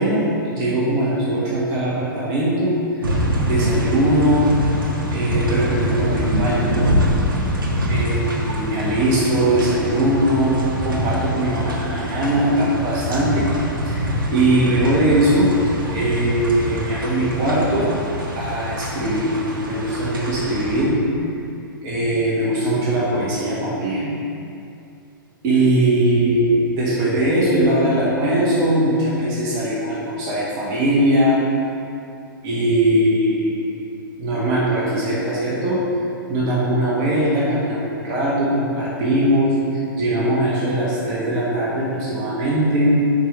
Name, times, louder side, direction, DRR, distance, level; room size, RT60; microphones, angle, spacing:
voice 1, 0.0-3.0 3.5-4.6 5.1-6.9 7.9-13.5 13.9-15.5 15.9-18.0 18.3-21.0 21.8-24.1 25.4-31.4 32.4-33.6 34.2-35.8 36.3-43.0, right 1 dB, 35° right, -7 dB, 1.7 m, -20 dB
sound 1, 3.0-20.9, equal, 75° right, 1.3 m, -24 dB
5.5 x 4.8 x 5.2 m, 2.5 s
figure-of-eight pair, 110°, 12 cm